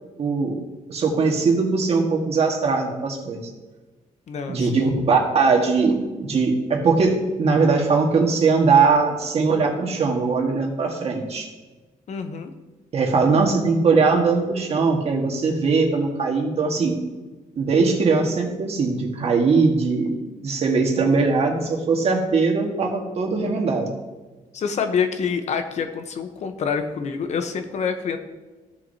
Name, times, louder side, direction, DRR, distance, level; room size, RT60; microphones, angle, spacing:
voice 1, 0.2-0.6 0.9-3.5 4.5-11.5 12.9-17.0 17.5-20.1 20.4-23.9, right 4 dB, 50° right, 1 dB, 1.6 m, -20 dB
voice 2, 4.3-4.9 12.1-12.5 24.5-28.2, left 6 dB, 55° left, 7 dB, 0.9 m, -26 dB
14.5 x 6.6 x 2.8 m, 1.2 s
cardioid pair, 140°, 14 cm